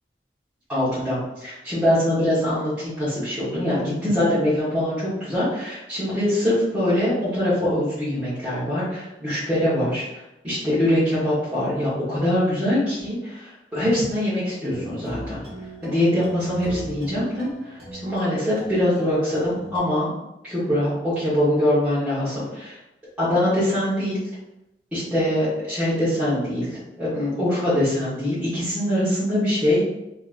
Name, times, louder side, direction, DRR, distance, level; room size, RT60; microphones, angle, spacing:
voice 1, 0.7-15.4 15.8-20.1 20.4-22.8 23.2-24.2 24.9-29.9, left 1 dB, 10° right, -14 dB, 1.3 m, -23 dB
sound 1, 14.7-19.8, equal, 60° right, 1.4 m, -39 dB
3.6 x 3.1 x 2.6 m, 0.91 s
head